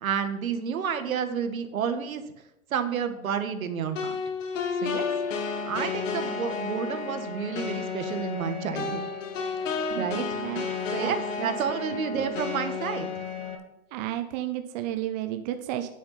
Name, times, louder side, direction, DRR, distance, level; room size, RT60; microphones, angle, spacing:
voice 1, 0.0-2.2 2.7-4.2 4.8-5.1 5.4-9.0 10.0-10.2 10.9-13.2, right 7 dB, 75° right, 8 dB, 1.6 m, -30 dB
sound 1, 4.0-13.6, left 5 dB, 65° left, 2.1 m, -32 dB
voice 2, 10.3-10.7 10.9-11.8 12.1-12.3 13.9-15.9, right 13 dB, 30° right, 7 dB, 0.7 m, -33 dB
9.5 x 6.9 x 5.7 m, 0.91 s
hypercardioid pair, 145°, 42 cm